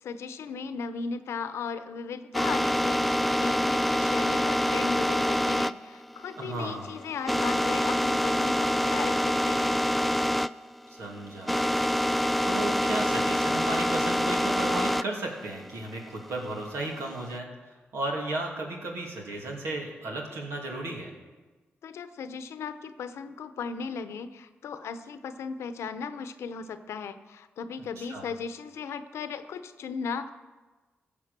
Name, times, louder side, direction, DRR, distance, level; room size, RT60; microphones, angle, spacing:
voice 1, 0.0-9.8 21.8-30.3, left 5 dB, 85° left, 11 dB, 0.8 m, -37 dB
sound 1, 2.3-10.5 10.8-15.1 15.5-17.3, equal, ahead, 0.4 m, -26 dB
voice 2, 6.4-6.9 10.9-11.7 12.4-21.1 28.0-28.3, right 2 dB, 85° right, 0 dB, 2.6 m, -34 dB
15.5 x 7.0 x 6.7 m, 1.3 s
cardioid pair, 60°, 5 cm